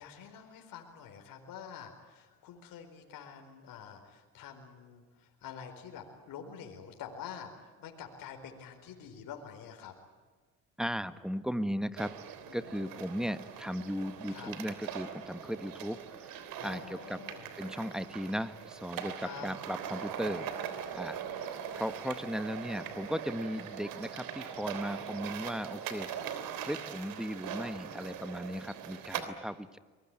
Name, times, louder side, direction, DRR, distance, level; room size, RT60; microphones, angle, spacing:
voice 1, 0.0-9.9 12.4-13.0 14.3-14.5 16.6-17.5 19.2-19.5, left 8 dB, 70° left, 3 dB, 4.5 m, -47 dB
voice 2, 10.8-17.3 17.6-20.5 20.9-29.8, equal, ahead, 12 dB, 1.5 m, -37 dB
sound 1, 12.0-29.2, right 8 dB, 75° right, 3.3 m, -41 dB
24.0 x 21.5 x 9.0 m, 1.4 s
supercardioid pair, 75°, 35 cm